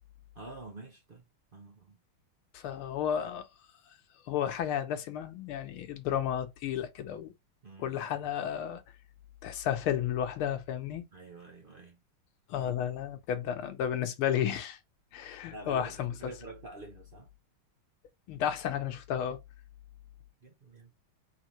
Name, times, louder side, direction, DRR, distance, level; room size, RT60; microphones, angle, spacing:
voice 1, 0.3-1.2 1.5-2.0 7.6-8.0 11.1-12.0 15.5-17.3 20.4-20.9, right 3 dB, 90° right, 0.4 m, -47 dB
voice 2, 2.5-3.4 4.3-7.3 7.8-8.8 9.4-11.0 12.5-14.8 15.1-16.3 18.3-19.4, left 9 dB, 80° left, 1.7 m, -32 dB
4.5 x 3.5 x 2.9 m
omnidirectional pair, 2.3 m